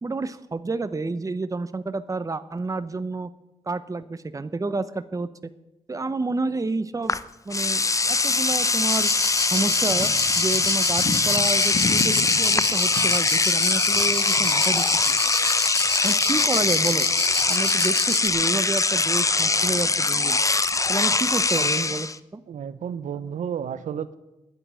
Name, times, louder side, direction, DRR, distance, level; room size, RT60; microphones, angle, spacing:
voice 1, 0.0-3.3 3.7-5.3 5.9-7.2 7.4-9.1 9.5-15.2 16.0-17.1 17.5-20.4 20.9-22.4, right 3 dB, 25° right, 13 dB, 0.8 m, -29 dB
Engine / Domestic sounds home sounds, 7.1-7.2 7.5-22.2, left 3 dB, 25° left, 0.7 m, -22 dB
sound 1, 8.9-18.3, left 4 dB, 45° left, 1.4 m, -29 dB
voice 2, 22.5-24.2, right 8 dB, 70° right, 15 dB, 0.8 m, -32 dB
9.8 x 9.3 x 8.8 m, 0.98 s
supercardioid pair, 50°, 14 cm